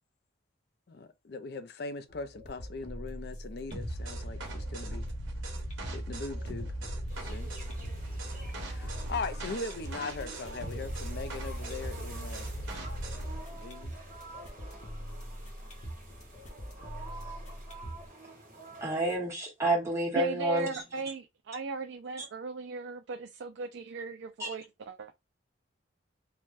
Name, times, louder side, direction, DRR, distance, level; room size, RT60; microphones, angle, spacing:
voice 1, 0.9-5.1 5.9-6.7 7.2-7.5 8.6-12.5 13.5-14.0, left 4 dB, 55° left, 0.4 m, -40 dB
sound 1, 2.1-18.1, equal, 40° left, 0.8 m, -44 dB
sound 2, 3.7-13.4, right 1 dB, 90° right, 0.9 m, -39 dB
sound 3, 7.1-19.2, right 2 dB, 40° right, 1.0 m, -49 dB
voice 2, 18.8-20.7 24.4-24.5, right 1 dB, 15° right, 1.1 m, -29 dB
voice 3, 20.1-25.1, right 4 dB, 70° right, 0.3 m, -37 dB
3.2 x 2.2 x 2.5 m
head